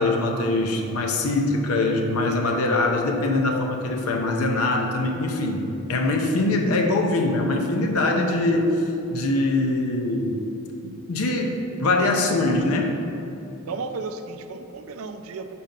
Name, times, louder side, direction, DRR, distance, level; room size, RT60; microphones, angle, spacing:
voice 1, 0.0-8.8 9.1-10.4 10.8-13.0, left 2 dB, 80° left, 2 dB, 0.6 m, -23 dB
voice 2, 13.7-15.5, right 4 dB, 75° right, 8 dB, 0.4 m, -34 dB
5.2 x 4.2 x 5.2 m, 2.8 s
head